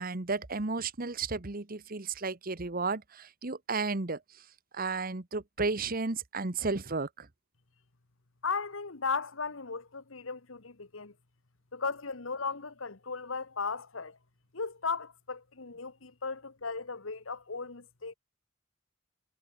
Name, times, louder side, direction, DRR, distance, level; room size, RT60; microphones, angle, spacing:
voice 1, 0.0-4.2 4.7-7.3, right 4 dB, 45° right, 1.3 m, -33 dB
voice 2, 8.4-11.1 11.7-14.2 14.5-18.1, left 4 dB, 85° left, 1.5 m, -36 dB
head